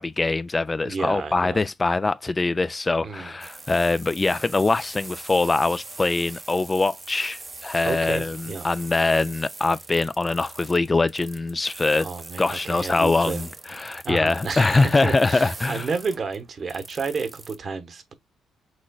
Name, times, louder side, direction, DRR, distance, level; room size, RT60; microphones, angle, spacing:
voice 1, 0.0-12.1 12.4-15.9, left 3 dB, 25° left, 0.3 m, -23 dB
voice 2, 0.8-1.6 3.0-3.3 7.8-8.7 12.0-13.4 14.0-18.1, right 4 dB, 45° right, 1.1 m, -31 dB
sound 1, 3.4-17.6, right 3 dB, 25° right, 0.7 m, -42 dB
6.2 x 3.7 x 2.3 m
cardioid pair, 90°, 0 cm